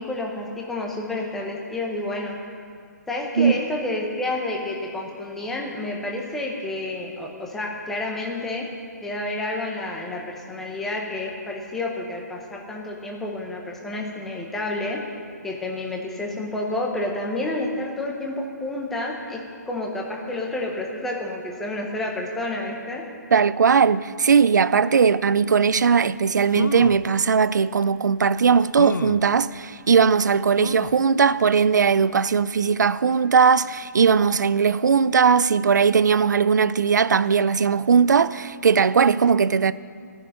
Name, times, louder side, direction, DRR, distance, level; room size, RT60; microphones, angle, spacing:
voice 1, 0.0-2.4 3.1-8.7 9.0-15.0 15.4-23.0, left 2 dB, 5° left, 0.7 m, -30 dB
voice 2, 23.3-39.7, right 6 dB, 70° right, 0.5 m, -19 dB
sound 1, 26.1-26.2 26.5-27.1 27.8-27.9 28.8-29.3 30.6-31.1 31.6-31.7 32.0-32.1, left 5 dB, 90° left, 0.5 m, -31 dB
13.0 x 6.6 x 9.9 m
hypercardioid pair, 170°, 10 cm